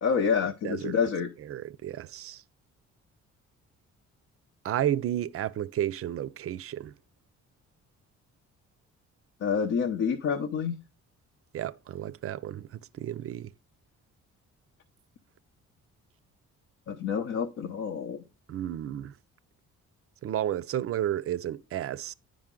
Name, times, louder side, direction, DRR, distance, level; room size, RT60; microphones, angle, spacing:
voice 1, 0.0-1.3 9.4-10.8 16.9-18.2, left 6 dB, 60° left, 0.8 m, -28 dB
voice 2, 0.6-1.0 1.4-2.4 4.6-6.9 11.5-13.5 18.5-19.2 20.2-22.1, right 11 dB, 50° right, 0.5 m, -32 dB
9.3 x 5.1 x 3.7 m
cardioid pair, 90°, 30 cm